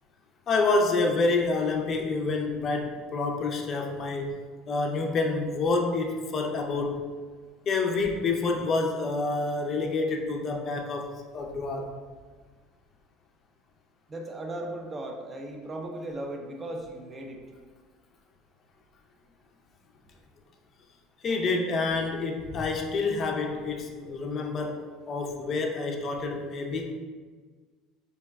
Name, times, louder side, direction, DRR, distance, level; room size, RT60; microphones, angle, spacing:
voice 1, 0.5-4.4 4.7-7.0 7.7-11.9 21.2-26.9, left 3 dB, 35° left, 2 dB, 0.4 m, -28 dB
voice 2, 14.1-17.4, right 1 dB, 20° right, 2 dB, 0.5 m, -37 dB
4.4 x 2.1 x 3.4 m, 1.5 s
cardioid pair, 130°, 0 cm